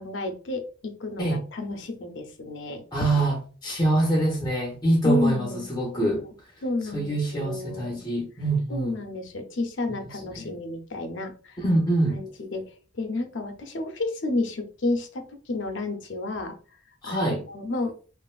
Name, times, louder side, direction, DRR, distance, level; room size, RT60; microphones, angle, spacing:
voice 1, 0.0-2.8 5.0-5.6 5.9-6.2 6.6-8.0 8.7-11.6 12.1-16.6 17.0-18.0, left 2 dB, 65° left, 0.6 m, -31 dB
voice 2, 2.9-6.2 6.9-9.0 10.3-10.5 11.6-12.2 17.0-17.4, right 1 dB, 20° left, 0.5 m, -25 dB
3.1 x 2.4 x 2.3 m
head